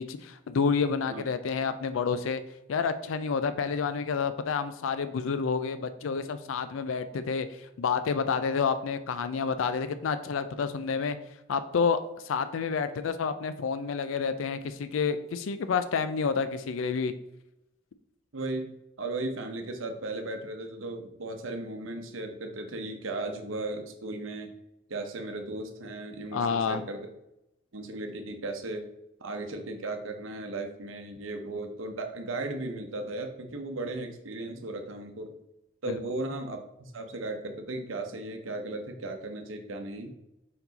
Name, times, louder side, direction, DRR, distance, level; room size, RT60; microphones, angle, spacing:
voice 1, 0.0-2.4 2.7-11.2 11.5-17.1 26.3-26.8 35.9-36.0, left 5 dB, 85° left, 11 dB, 0.4 m, -29 dB
voice 2, 18.3-18.7 19.0-24.5 24.9-27.1 27.7-28.9 29.2-35.3 35.8-40.1, right 2 dB, 90° right, 4 dB, 0.8 m, -36 dB
5.4 x 4.7 x 3.9 m, 0.88 s
head